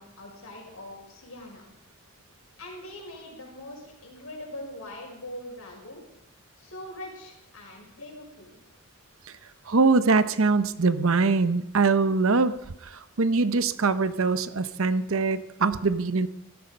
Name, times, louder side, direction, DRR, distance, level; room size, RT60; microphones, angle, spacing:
voice 1, 0.0-1.7 2.6-6.0 6.6-8.5, left 1 dB, 70° left, 0 dB, 6.0 m, -42 dB
voice 2, 9.7-12.6 12.8-16.3, right 4 dB, 65° right, 13 dB, 0.8 m, -23 dB
16.5 x 14.0 x 5.3 m, 0.85 s
head